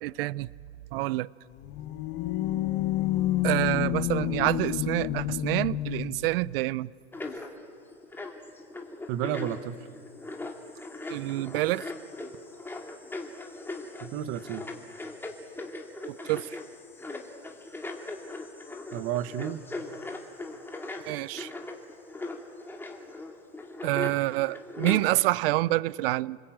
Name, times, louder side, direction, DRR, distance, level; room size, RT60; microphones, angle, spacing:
voice 1, 0.0-0.5 0.9-1.3 3.4-6.9 11.1-11.9 16.1-16.6 21.1-21.5 23.8-26.4, right 19 dB, 55° right, 0.6 m, -27 dB
sound 1, 1.5-6.3, left 14 dB, 40° left, 1.2 m, -29 dB
sound 2, 7.1-25.2, left 2 dB, 5° left, 2.3 m, -39 dB
voice 2, 9.1-9.8 14.0-14.6 18.9-19.6, right 11 dB, 40° right, 1.2 m, -31 dB
29.5 x 20.5 x 8.8 m
supercardioid pair, 140°, 33 cm